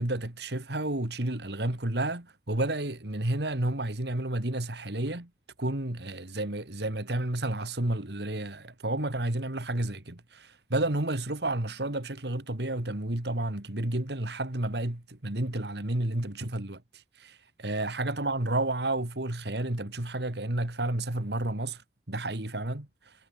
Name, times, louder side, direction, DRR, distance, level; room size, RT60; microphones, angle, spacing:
voice 1, 0.0-5.3 5.6-16.8 17.2-21.8 22.1-23.1, right 1 dB, 70° right, 2.4 m, -31 dB
head